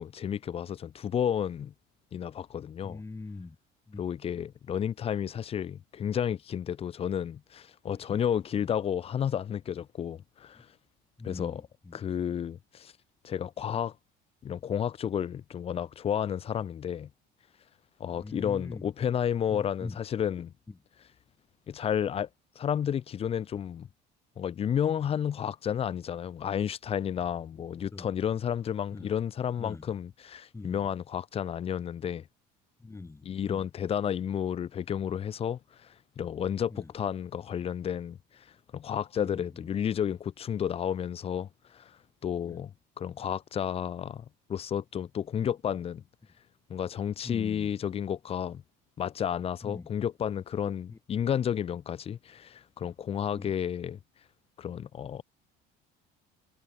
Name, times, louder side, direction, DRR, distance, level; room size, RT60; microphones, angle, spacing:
voice 1, 0.0-1.7 2.1-3.0 4.0-10.7 11.2-11.6 11.9-12.9 13.2-13.9 14.4-17.1 18.0-20.5 21.7-22.3 22.6-23.9 24.4-32.3 33.2-38.5 38.7-42.0 42.2-46.0 46.7-48.6 49.0-54.0 54.6-55.2, left 9 dB, 30° left, 0.6 m, -32 dB
voice 2, 2.8-3.6 3.9-4.0 7.9-8.0 10.5-10.6 11.2-12.0 18.1-18.9 19.5-20.0 20.7-20.8 27.5-27.6 27.9-28.1 28.9-29.1 29.6-29.9 30.5-30.9 32.8-33.7 36.7-36.9 39.2-39.7 42.4-42.6 47.2-47.7 49.6-49.9 50.9-51.0 53.3-53.5, left 3 dB, 15° left, 2.7 m, -43 dB
cardioid pair, 130°, 20 cm